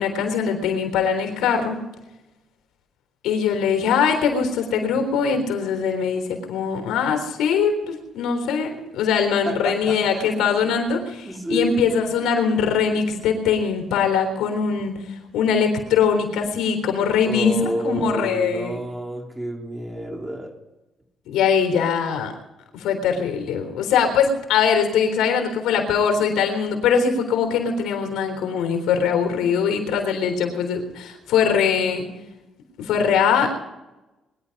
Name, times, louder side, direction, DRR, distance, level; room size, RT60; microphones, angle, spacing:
voice 1, 0.0-1.8 3.2-18.8 21.3-22.3 22.7-32.1 32.8-33.5, left 6 dB, 85° left, 4 dB, 3.8 m, -22 dB
voice 2, 9.4-10.4 11.2-11.7 17.2-20.5, right 1 dB, 15° right, 3 dB, 3.3 m, -29 dB
22.0 x 11.5 x 5.4 m, 1.0 s
cardioid pair, 90°, 0 cm